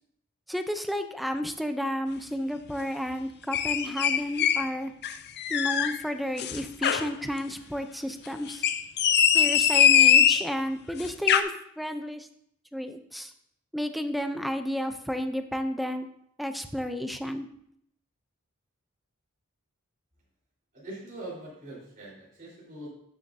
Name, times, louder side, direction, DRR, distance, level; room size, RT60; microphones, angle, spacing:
voice 1, 0.5-4.9 5.5-8.6 9.3-12.3 12.7-13.3 13.7-16.1 16.4-17.5, equal, ahead, 8 dB, 0.5 m, -32 dB
sound 1, 3.5-4.7 5.0-6.0 6.4-7.1 8.5-10.5 11.0-11.4, left 9 dB, 50° left, 0.5 m, -21 dB
voice 2, 20.7-22.9, right 1 dB, 40° right, -7 dB, 4.1 m, -42 dB
12.5 x 7.3 x 2.7 m, 0.72 s
head